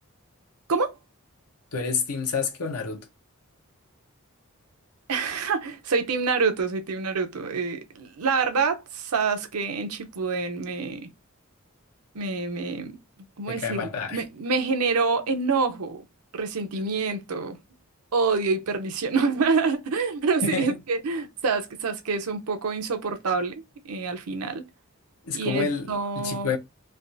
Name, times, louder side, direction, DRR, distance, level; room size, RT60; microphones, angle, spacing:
voice 1, 1.7-3.1 13.5-14.2 20.4-20.7 25.2-25.9 26.2-26.6, left 5 dB, 85° left, 0.8 m, -28 dB
voice 2, 5.1-11.1 12.1-13.0 13.4-16.0 16.3-17.6 18.1-24.7 25.3-26.5, right 4 dB, 85° right, 0.7 m, -27 dB
3.4 x 2.4 x 2.6 m
head